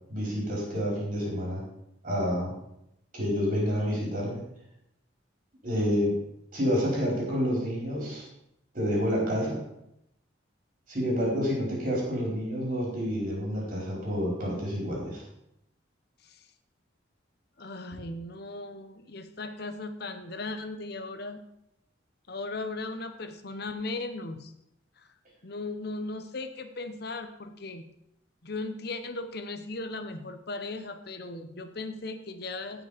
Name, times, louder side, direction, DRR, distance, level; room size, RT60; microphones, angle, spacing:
voice 1, 0.1-1.6 2.0-2.5 3.1-4.4 5.6-6.2 6.5-8.2 8.7-9.6 10.9-15.2, equal, 45° right, -3 dB, 5.0 m, -28 dB
voice 2, 17.6-21.4 22.3-24.5 25.0-25.1 25.4-27.9 28.4-32.8, left 2 dB, 55° left, 8 dB, 0.9 m, -37 dB
17.0 x 6.1 x 5.2 m, 0.79 s
head